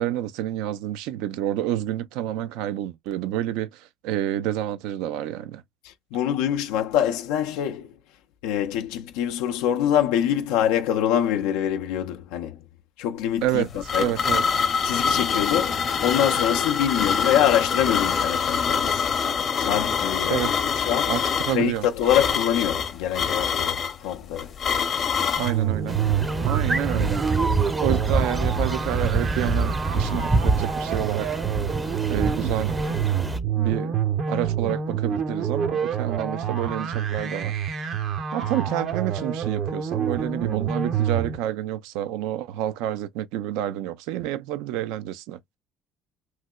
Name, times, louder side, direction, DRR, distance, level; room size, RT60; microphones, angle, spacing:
voice 1, 0.0-5.6 13.4-14.4 20.3-20.7 21.1-21.2 21.5-21.8 25.4-26.0 26.4-27.2 27.8-31.3 32.1-32.7 33.5-34.0 34.3-37.6 38.3-45.4, right 12 dB, 80° right, 0.4 m, -29 dB
voice 2, 5.8-7.9 8.4-12.6 13.0-13.7 13.9-14.1 14.8-19.1 19.6-21.1 21.5-24.5, left 10 dB, 85° left, 0.3 m, -25 dB
sound 1, 13.4-25.6, left 6 dB, 50° left, 0.7 m, -25 dB
sound 2, 25.4-41.4, right 7 dB, 60° right, 0.7 m, -27 dB
sound 3, 25.9-33.4, right 3 dB, 15° right, 0.5 m, -26 dB
3.1 x 2.8 x 2.2 m
supercardioid pair, 80°, 0 cm